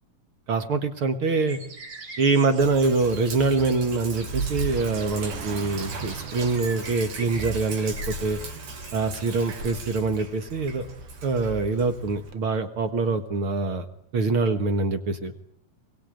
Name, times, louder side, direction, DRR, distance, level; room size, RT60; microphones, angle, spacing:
voice 1, 0.5-1.6 2.2-8.4 8.9-10.9 11.2-13.9 14.1-15.3, right 4 dB, 50° right, 8 dB, 1.7 m, -24 dB
Car passing by, 0.8-1.0 1.4-12.4, right 6 dB, 65° right, 1.2 m, -45 dB
sound 1, 1.5-10.0, right 3 dB, 35° right, 2.6 m, -44 dB
Sink (filling or washing), 2.6-12.3, right 3 dB, 85° right, 5.6 m, -36 dB
25.5 x 22.5 x 9.1 m, 0.69 s
omnidirectional pair, 4.2 m